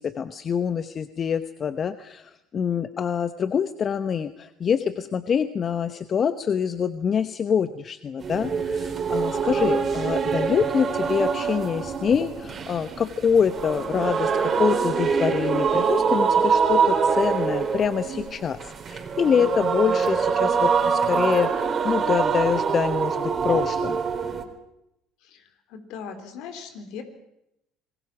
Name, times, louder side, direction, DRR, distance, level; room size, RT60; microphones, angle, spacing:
voice 1, 0.0-24.0, left 7 dB, 40° left, 12 dB, 1.0 m, -25 dB
sound 1, 8.2-24.4, right 6 dB, 40° right, 3.7 m, -24 dB
voice 2, 25.7-27.0, left 6 dB, 70° left, 7 dB, 3.8 m, -38 dB
26.5 x 20.5 x 6.1 m, 0.83 s
hypercardioid pair, 65°, 0 cm